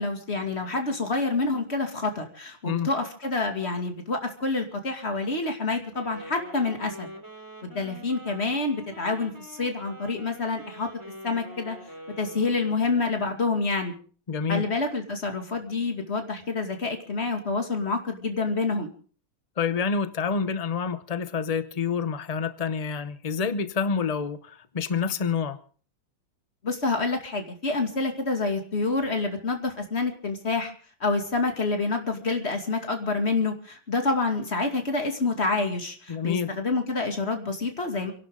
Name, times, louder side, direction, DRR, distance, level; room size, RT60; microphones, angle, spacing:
voice 1, 0.0-7.1 7.6-10.9 11.2-11.8 12.2-13.9 14.5-18.9 26.6-30.7 31.0-38.1, left 3 dB, 35° left, 2.6 m, -27 dB
Wind instrument woodwind instrument, 5.9-13.0, equal, 10° right, 2.9 m, -44 dB
voice 2, 14.3-14.6 19.6-25.6 36.1-36.5, left 6 dB, 80° left, 0.3 m, -28 dB
29.5 x 11.5 x 3.8 m
omnidirectional pair, 2.1 m